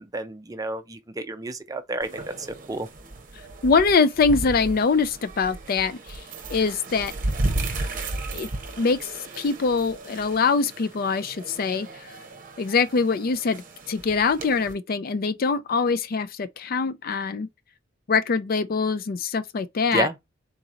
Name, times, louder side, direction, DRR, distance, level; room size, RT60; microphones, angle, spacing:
voice 1, 0.0-2.9 19.9-20.2, right 2 dB, 20° right, 0.5 m, -30 dB
sound 1, 2.0-14.7, right 2 dB, 45° right, 0.8 m, -34 dB
voice 2, 3.6-6.2 6.5-7.1 8.3-8.5 8.8-9.1 9.4-12.1 12.6-17.5 18.1-20.1, left 4 dB, 45° left, 0.4 m, -23 dB
3.9 x 2.9 x 3.7 m
head